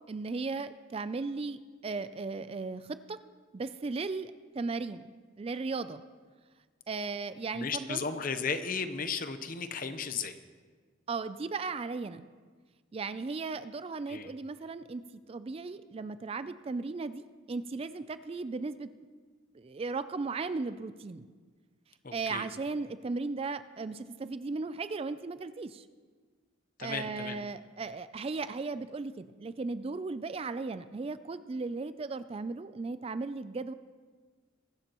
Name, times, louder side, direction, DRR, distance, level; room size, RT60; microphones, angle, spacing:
voice 1, 0.1-3.2 3.5-6.0 6.9-8.0 11.1-12.2 12.9-15.0 15.3-18.9 19.5-21.3 22.1-25.8 26.8-33.7, right 4 dB, 30° right, 13 dB, 0.3 m, -36 dB
voice 2, 7.5-10.3 14.1-14.3 22.0-22.4 26.8-27.4, left 5 dB, 45° left, 10 dB, 0.8 m, -35 dB
22.0 x 12.0 x 3.0 m, 1.5 s
head